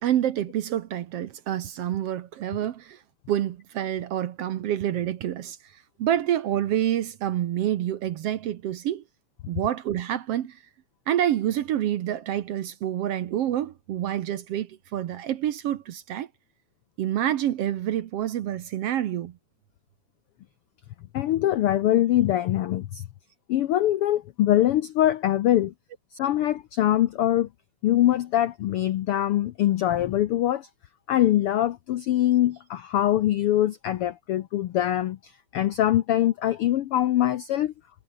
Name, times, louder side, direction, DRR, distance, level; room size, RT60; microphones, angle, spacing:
voice 1, 0.0-3.0 3.3-9.0 9.5-10.6 11.1-16.3 17.0-19.3, right 11 dB, 65° right, 1.7 m, -27 dB
voice 2, 21.1-23.0 23.5-25.7 26.1-27.5 27.8-30.7 31.1-37.7, left 13 dB, 75° left, 1.3 m, -23 dB
omnidirectional pair, 3.5 m